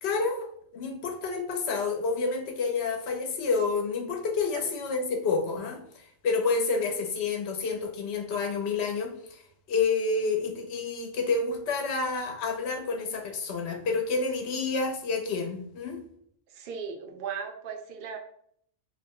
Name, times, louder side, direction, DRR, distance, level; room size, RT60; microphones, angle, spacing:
voice 1, 0.0-5.8 6.2-9.4 9.7-16.0, left 4 dB, 65° left, 2 dB, 0.9 m, -29 dB
voice 2, 16.5-18.2, right 6 dB, 60° right, 4 dB, 0.6 m, -37 dB
2.5 x 2.1 x 3.5 m, 0.66 s
omnidirectional pair, 1.3 m